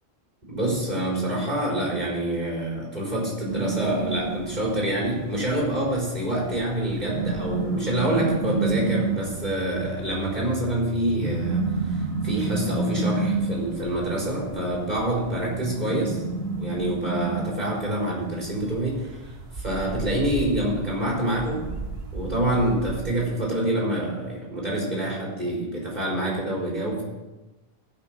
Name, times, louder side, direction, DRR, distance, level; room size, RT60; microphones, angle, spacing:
voice 1, 0.5-12.0 12.2-16.2 16.6-21.8 22.1-27.0, right 1 dB, 45° right, -4 dB, 4.6 m, -26 dB
sound 1, 3.5-23.0, right 3 dB, 80° right, 1.6 m, -31 dB
16.5 x 6.0 x 6.0 m, 1.1 s
omnidirectional pair, 1.0 m